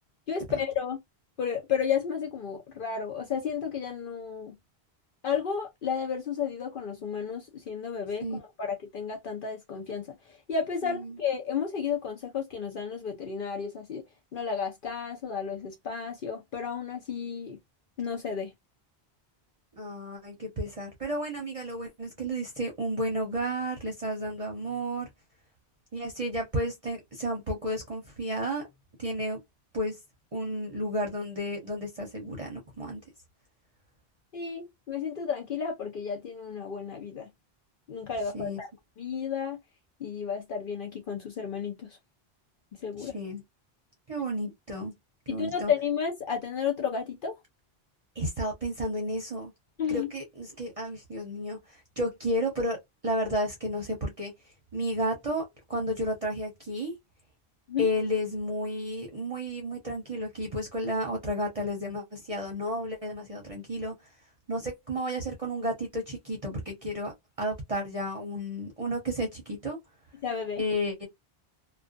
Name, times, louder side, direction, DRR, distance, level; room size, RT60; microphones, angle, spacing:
voice 1, 0.3-1.0 1.4-4.6 5.2-14.0 14.3-17.6 18.0-18.5 34.3-37.3 37.9-38.7 39.0-39.6 40.0-42.0 42.8-43.2 45.3-47.4 49.8-50.1 57.7-57.9 70.2-70.6, left 7 dB, 60° left, 0.7 m, -32 dB
voice 2, 10.8-11.2 19.7-25.1 25.9-28.6 29.0-29.4 29.7-30.0 30.3-33.0 38.3-38.6 43.0-43.4 44.1-44.9 45.3-45.7 48.2-49.5 49.9-52.8 53.0-57.0 57.8-64.1 64.5-67.1 67.4-69.8 70.6-71.1, equal, 40° right, 0.7 m, -32 dB
2.4 x 2.2 x 2.4 m
omnidirectional pair, 1.1 m